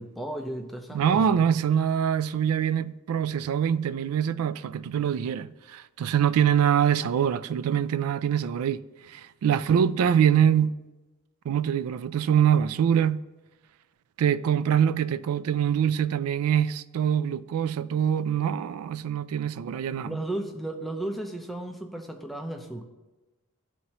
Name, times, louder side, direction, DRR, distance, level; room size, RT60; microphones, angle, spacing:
voice 1, 0.0-1.4 20.1-22.8, right 1 dB, ahead, 0.5 m, -34 dB
voice 2, 0.9-8.8 9.1-10.7 11.5-13.2 14.2-20.2, right 8 dB, 75° right, 0.3 m, -24 dB
12.5 x 4.2 x 2.9 m
head